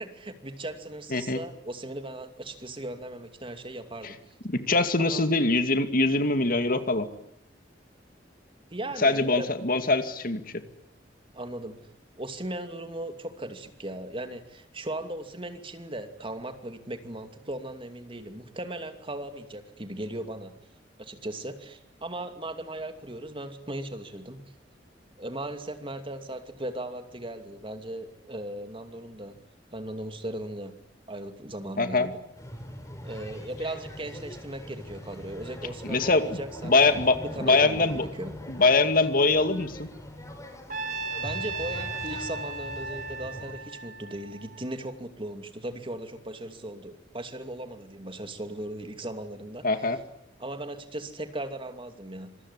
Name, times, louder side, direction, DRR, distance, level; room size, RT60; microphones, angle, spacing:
voice 1, 0.0-4.3 5.0-5.3 8.7-9.5 11.3-11.8 12.2-20.5 21.0-24.5 25.2-29.4 29.7-30.7 31.1-32.2 33.0-36.7 37.4-38.3 41.2-49.7 50.4-52.4, right 1 dB, 30° right, 8 dB, 2.6 m, -37 dB
voice 2, 4.4-7.1 9.0-10.6 31.8-32.1 35.8-38.1 38.5-39.9 49.6-50.0, left 3 dB, 50° left, 9 dB, 2.3 m, -23 dB
sound 1, 32.4-43.5, equal, 15° left, 5.5 m, -42 dB
Trumpet, 40.7-44.9, right 4 dB, 45° right, 2.6 m, -36 dB
26.5 x 22.5 x 9.9 m, 0.75 s
head